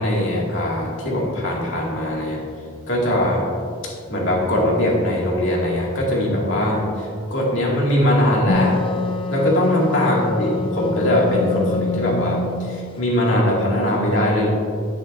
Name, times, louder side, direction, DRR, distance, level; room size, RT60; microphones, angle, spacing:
voice 1, 0.0-2.4 2.9-3.5 3.8-8.8 9.3-14.5, left 1 dB, 80° left, -3 dB, 2.2 m, -21 dB
Wind instrument woodwind instrument, 8.5-12.9, left 3 dB, 25° left, 0.4 m, -25 dB
10.0 x 9.4 x 2.6 m, 2.2 s
head